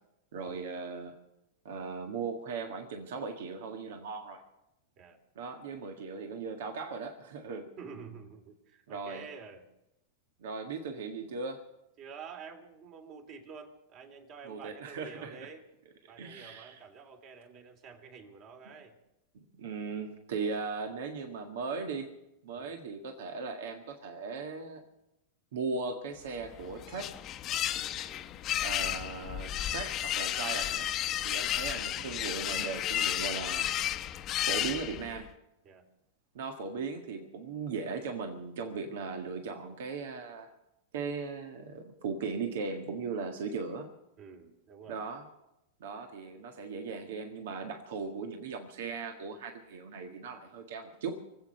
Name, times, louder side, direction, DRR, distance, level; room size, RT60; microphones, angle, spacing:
voice 1, 0.3-1.1 1.6-4.4 5.3-7.7 8.9-9.3 10.4-11.6 14.4-15.5 16.2-16.8 19.3-22.1 22.4-24.8 25.5-27.2 28.6-30.9 31.2-33.7 34.4-35.3 36.3-40.5 40.9-43.9 44.9-45.2 45.8-51.2, right 4 dB, 75° right, 4 dB, 1.7 m, -38 dB
voice 2, 7.8-9.6 12.0-15.6 16.1-19.0 22.6-22.8 28.0-28.3 31.4-31.6 35.6-35.8 44.2-45.0, right 5 dB, 45° right, 4 dB, 3.3 m, -49 dB
sound 1, 26.4-35.3, left 12 dB, 35° left, 0.9 m, -33 dB
24.5 x 8.4 x 6.6 m, 0.89 s
hypercardioid pair, 120°, 0 cm